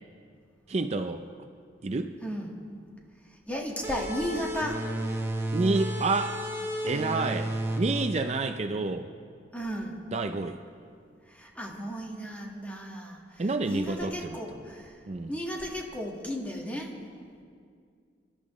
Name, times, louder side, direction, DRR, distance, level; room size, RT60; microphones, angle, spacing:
voice 1, 0.7-1.2 1.8-2.1 5.5-6.5 6.8-9.1 10.1-10.6 13.4-14.4 15.1-15.4, right 3 dB, 40° right, 7 dB, 0.5 m, -29 dB
voice 2, 2.2-2.5 3.5-4.8 9.5-10.0 11.3-14.9 15.3-16.9, equal, 10° left, -1 dB, 1.6 m, -34 dB
sound 1, 3.8-9.1, right 1 dB, 15° right, 1.1 m, -33 dB
28.0 x 12.0 x 3.1 m, 2.2 s
head